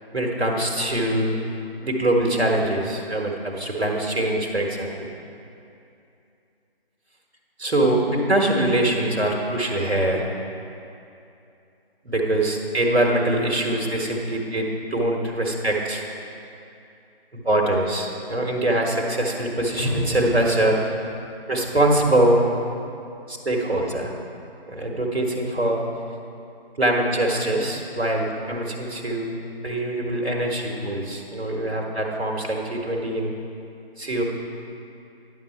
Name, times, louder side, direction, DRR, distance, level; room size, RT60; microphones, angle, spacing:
voice 1, 0.1-1.4 1.8-5.1 7.6-10.2 12.0-16.0 17.3-20.8 21.5-22.4 23.3-24.1 24.7-25.8 26.8-29.3 29.6-33.3 34.0-34.2, right 1 dB, 85° right, 0 dB, 1.6 m, -23 dB
sound 1, 19.8-21.9 22.3-22.4, equal, 5° right, 0.6 m, -31 dB
10.5 x 6.6 x 4.4 m, 2.7 s
figure-of-eight pair, 150°, 31 cm